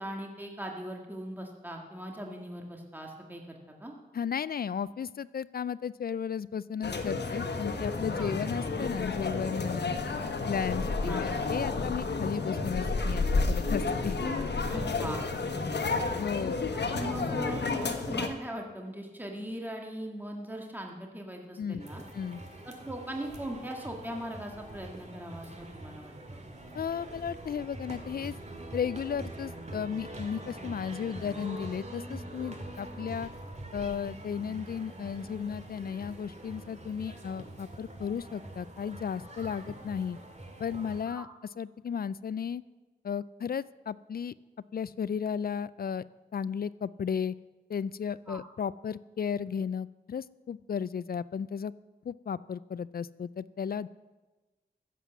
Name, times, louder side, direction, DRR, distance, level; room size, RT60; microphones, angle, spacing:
voice 1, 0.0-3.9 8.2-8.3 11.1-11.3 14.6-15.2 15.5-15.9 16.7-22.0 22.6-26.4 41.1-41.3 48.3-48.4, right 1 dB, 10° right, 1 dB, 1.9 m, -40 dB
voice 2, 4.1-10.0 10.5-14.2 16.2-16.6 21.6-21.9 22.1-22.4 26.7-28.3 28.7-33.3 33.7-40.2 40.6-41.3 41.6-42.6 43.0-44.3 44.7-46.0 46.3-47.3 47.7-51.7 52.0-53.9, left 7 dB, 60° left, 18 dB, 0.4 m, -34 dB
sound 1, 6.8-18.3, left 3 dB, 80° left, 1.2 m, -31 dB
sound 2, 21.8-41.0, right 1 dB, 40° right, 2.1 m, -44 dB
15.0 x 7.6 x 7.1 m, 1.2 s
wide cardioid pair, 70°, 17 cm